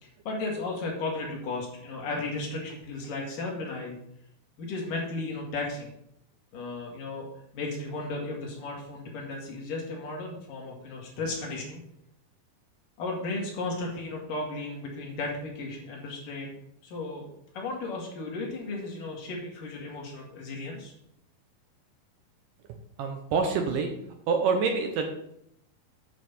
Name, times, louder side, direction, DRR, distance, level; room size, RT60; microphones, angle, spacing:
voice 1, 0.0-4.0 4.6-5.9 6.5-7.3 7.5-11.8 13.0-16.5 16.8-17.3 17.5-20.9, left 2 dB, 60° left, -1 dB, 3.6 m, -35 dB
voice 2, 23.0-23.9 24.3-25.1, right 5 dB, 70° right, 4 dB, 2.2 m, -26 dB
9.2 x 5.3 x 6.8 m, 0.76 s
omnidirectional pair, 4.4 m